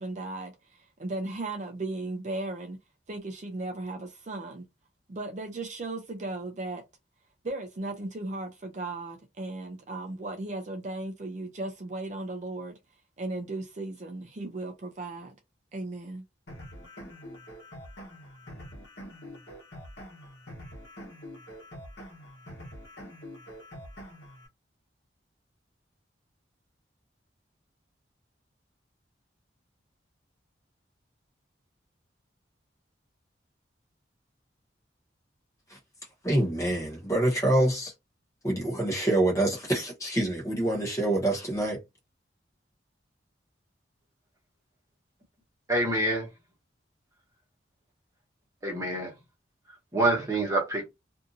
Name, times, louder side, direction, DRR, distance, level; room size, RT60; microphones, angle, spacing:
voice 1, 0.0-2.8 3.1-4.7 5.1-6.8 7.4-12.8 13.2-15.3 15.7-16.2, right 2 dB, 40° right, 0.4 m, -36 dB
sound 1, 16.5-24.5, equal, 65° left, 1.0 m, -45 dB
voice 2, 36.2-37.9 38.4-41.8, right 1 dB, 15° left, 1.0 m, -26 dB
voice 3, 45.7-46.3 48.6-49.1 49.9-50.9, right 2 dB, 20° right, 1.1 m, -26 dB
2.6 x 2.5 x 2.6 m
head